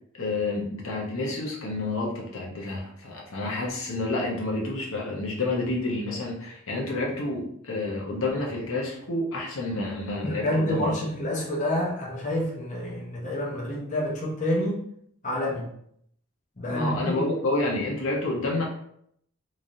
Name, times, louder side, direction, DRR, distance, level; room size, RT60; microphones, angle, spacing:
voice 1, 0.1-11.0 16.7-18.6, left 2 dB, 65° left, -2 dB, 0.8 m, -29 dB
voice 2, 10.2-14.8 15.2-15.7 16.6-17.2, left 1 dB, 35° left, -3 dB, 0.8 m, -28 dB
3.8 x 3.2 x 2.7 m, 0.70 s
head